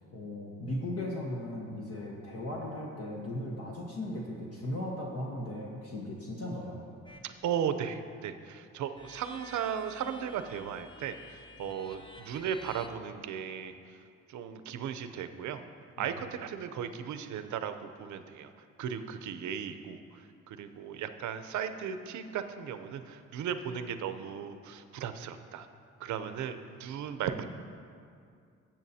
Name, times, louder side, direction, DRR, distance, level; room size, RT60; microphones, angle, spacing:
voice 1, 0.1-6.8 11.6-11.7 16.0-16.1, left 1 dB, 55° left, -2 dB, 1.2 m, -37 dB
sound 1, 7.1-7.3 9.0-12.9, left 1 dB, 15° left, 0.7 m, -51 dB
voice 2, 7.2-13.7 14.3-15.6 16.0-18.5 18.8-20.2 20.5-25.7 26.0-27.5, right 8 dB, 70° right, 10 dB, 0.6 m, -36 dB
15.0 x 7.2 x 2.8 m, 2.3 s
cardioid pair, 90°, 30 cm